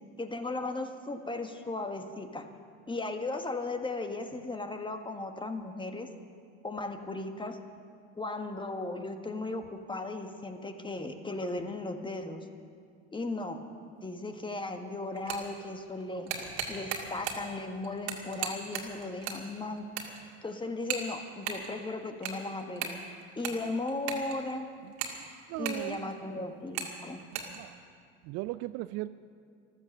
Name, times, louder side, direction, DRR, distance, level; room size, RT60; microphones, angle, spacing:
voice 1, 0.2-2.5 2.9-6.1 6.6-7.6 8.2-12.4 13.1-13.6 14.0-16.3 16.7-19.8 20.4-23.0 23.4-24.7 25.6-27.2, left 2 dB, 15° left, 6 dB, 1.6 m, -36 dB
sound 1, 14.3-14.4 15.0-15.6 16.0-17.5 17.8-19.4 19.7-20.3 20.8-21.7 22.0-24.5 24.9-26.2 26.7-26.9 27.2-27.6, right 7 dB, 70° right, 2.1 m, -37 dB
voice 2, 25.5-26.1 27.3-27.7 28.2-29.1, right 17 dB, 50° right, 13 dB, 0.5 m, -37 dB
14.5 x 13.0 x 6.7 m, 2.1 s
figure-of-eight pair, 65°, 33 cm